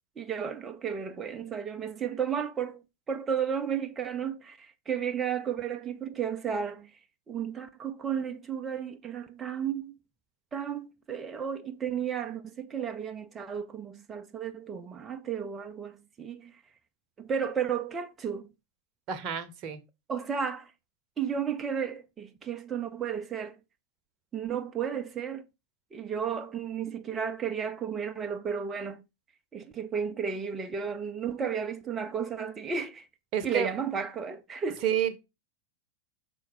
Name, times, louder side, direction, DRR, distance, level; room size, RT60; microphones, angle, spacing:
voice 1, 0.2-2.8 3.1-6.9 7.3-10.0 10.5-16.5 17.2-18.4 20.1-20.7 21.2-23.6 24.3-25.4 25.9-29.0 29.5-33.1 33.4-34.8, right 7 dB, 20° right, 0.7 m, -33 dB
voice 2, 19.1-19.8 33.3-33.7 34.8-35.2, right 9 dB, 40° right, 1.0 m, -29 dB
5.8 x 4.2 x 4.8 m
figure-of-eight pair, 90°, 0 cm